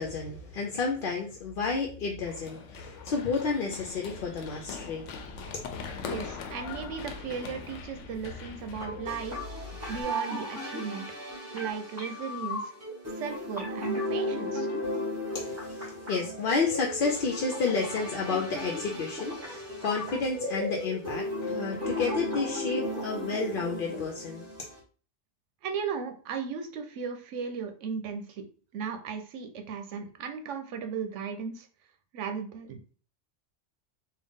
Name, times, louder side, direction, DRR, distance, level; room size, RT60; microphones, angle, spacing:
voice 1, 0.0-5.1 5.5-5.6 15.3-24.5, left 4 dB, 60° left, 1 dB, 0.7 m, -31 dB
Run, 2.3-10.0, left 5 dB, 80° left, 0.9 m, -41 dB
voice 2, 6.1-9.5 9.9-11.0 11.5-12.7 13.2-14.7 25.6-28.5 28.7-31.7 32.1-32.8, right 6 dB, 85° right, 7 dB, 1.0 m, -36 dB
sound 1, 8.8-24.8, left 1 dB, 15° right, 1.0 m, -35 dB
3.8 x 2.3 x 3.6 m, 0.40 s
omnidirectional pair, 1.2 m